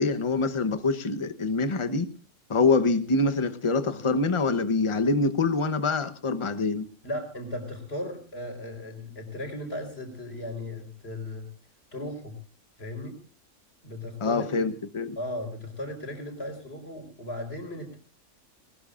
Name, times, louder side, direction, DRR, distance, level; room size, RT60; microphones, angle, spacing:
voice 1, 0.0-2.1 2.5-6.9 14.2-15.2, left 3 dB, 25° left, 0.9 m, -25 dB
voice 2, 7.0-11.5 11.9-12.4 12.8-13.2 13.8-14.7 15.2-18.0, left 1 dB, 40° left, 4.6 m, -36 dB
20.5 x 20.0 x 2.5 m
omnidirectional pair, 1.5 m